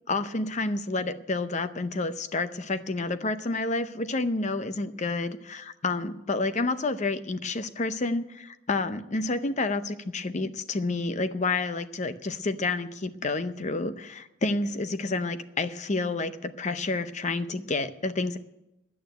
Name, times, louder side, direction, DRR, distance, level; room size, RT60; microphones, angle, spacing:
voice 1, 0.1-18.4, left 3 dB, 35° left, 12 dB, 0.6 m, -29 dB
11.0 x 9.1 x 9.1 m, 0.93 s
head